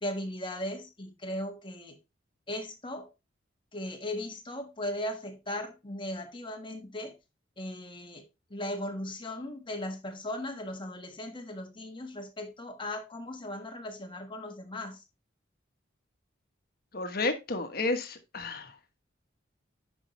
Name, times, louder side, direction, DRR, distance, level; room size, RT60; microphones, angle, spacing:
voice 1, 0.0-2.0 2.5-3.1 3.7-7.1 7.6-8.2 8.5-15.0, left 1 dB, 25° left, 1.4 m, -37 dB
voice 2, 16.9-18.7, left 3 dB, 55° left, 1.2 m, -31 dB
9.7 x 5.6 x 3.1 m
head